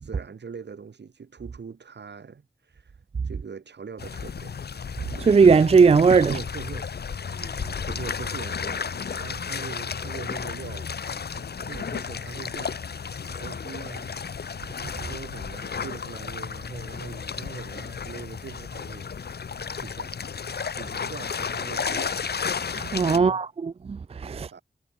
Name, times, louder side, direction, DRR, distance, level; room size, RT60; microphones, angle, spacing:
voice 1, 0.0-3.0 3.2-4.6 6.3-6.9 7.9-10.9 11.6-12.8 13.3-14.2 15.0-19.3 19.8-20.2 20.7-22.2 23.1-23.4 24.3-24.6, right 5 dB, 80° right, 6.6 m, -41 dB
sound 1, 4.0-23.2, left 6 dB, 65° left, 1.1 m, -33 dB
voice 2, 5.1-6.4 22.8-24.5, right 5 dB, 35° right, 0.4 m, -18 dB
cardioid pair, 50°, 18 cm